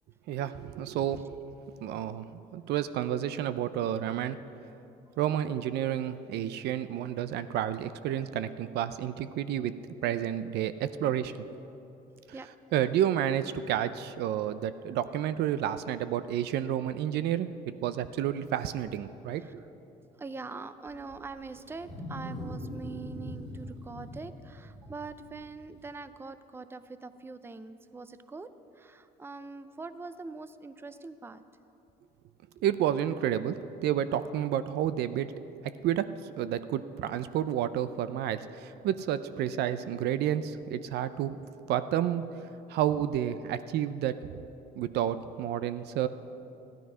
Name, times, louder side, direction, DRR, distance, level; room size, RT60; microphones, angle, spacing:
voice 1, 0.3-1.4 1.8-4.4 5.2-9.7 10.0-11.4 12.7-19.4 32.6-35.3 35.8-41.4 41.7-42.2 42.7-44.1 44.8-46.1, right 10 dB, 75° right, 13 dB, 0.6 m, -30 dB
voice 2, 20.2-28.5 28.8-31.4, right 3 dB, 15° right, 12 dB, 0.5 m, -43 dB
Wild animals, 20.9-25.9, equal, 40° right, 4.2 m, -42 dB
14.5 x 12.0 x 5.6 m, 2.8 s
cardioid pair, 110°, 17 cm